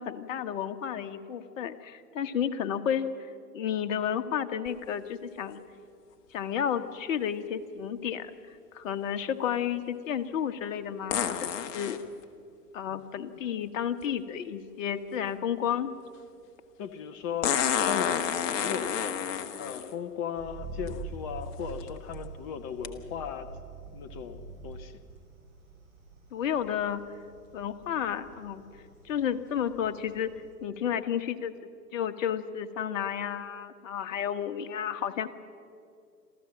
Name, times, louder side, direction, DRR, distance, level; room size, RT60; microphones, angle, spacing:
voice 1, 0.0-5.6 6.3-12.0 12.7-15.9 26.3-27.0 27.5-28.6 29.0-30.3 30.6-31.5 31.9-35.3, left 9 dB, 55° left, 9 dB, 1.4 m, -32 dB
sound 1, 4.7-4.8 11.1-12.0 14.0-14.1 17.4-19.9 20.9-21.0 21.6-21.9 22.8-22.9, left 9 dB, 35° left, 1.4 m, -29 dB
voice 2, 16.8-18.2 18.5-23.5 23.9-24.9, left 8 dB, 15° left, 9 dB, 0.4 m, -37 dB
sound 2, 20.3-30.5, right 4 dB, 30° right, 7.1 m, -45 dB
27.5 x 14.0 x 7.5 m, 2.4 s
figure-of-eight pair, 115°, 48 cm